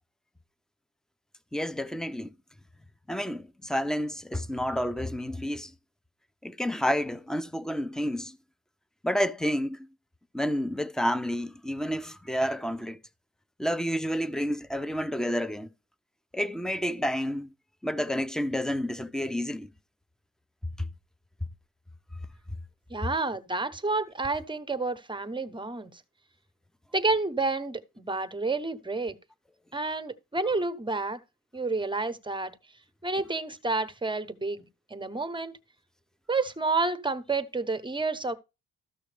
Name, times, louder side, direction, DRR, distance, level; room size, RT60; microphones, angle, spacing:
voice 1, 1.5-2.3 3.1-5.7 6.4-8.4 9.0-9.9 10.3-13.0 13.6-15.7 16.3-17.5 17.8-19.7 20.8-20.9, equal, ahead, 0.5 m, -30 dB
voice 2, 22.9-26.0 26.9-29.2 29.7-31.2 31.5-32.5 33.0-34.6 34.9-35.5 36.3-38.3, right 3 dB, 15° right, 0.9 m, -29 dB
13.5 x 6.1 x 3.4 m
cardioid pair, 90°, 30 cm